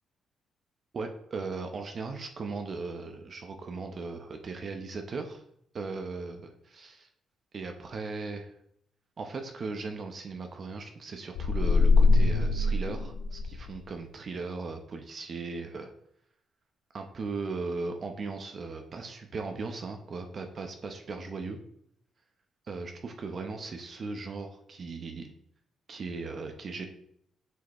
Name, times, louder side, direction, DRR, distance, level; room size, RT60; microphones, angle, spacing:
voice 1, 0.9-5.4 5.7-7.1 7.5-8.5 9.2-15.9 16.9-21.6 22.7-25.3 25.9-26.9, right 4 dB, 50° right, 5 dB, 0.9 m, -38 dB
sound 1, 11.4-13.8, left 3 dB, 85° left, 0.4 m, -23 dB
8.1 x 4.7 x 3.1 m, 0.71 s
supercardioid pair, 70°, 0 cm